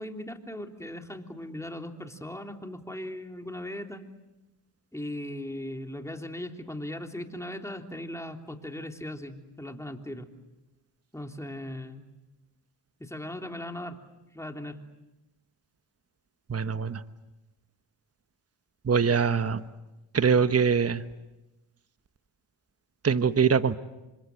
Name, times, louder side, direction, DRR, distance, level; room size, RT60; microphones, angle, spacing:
voice 1, 0.0-4.1 4.9-10.3 11.1-12.1 13.0-14.0 14.3-14.8, left 1 dB, 5° left, 3 dB, 3.3 m, -38 dB
voice 2, 16.5-17.0 18.9-19.7 20.1-21.0 23.0-23.8, right 6 dB, 30° right, 11 dB, 1.2 m, -23 dB
29.0 x 26.0 x 7.9 m, 1.0 s
cardioid pair, 60°, 47 cm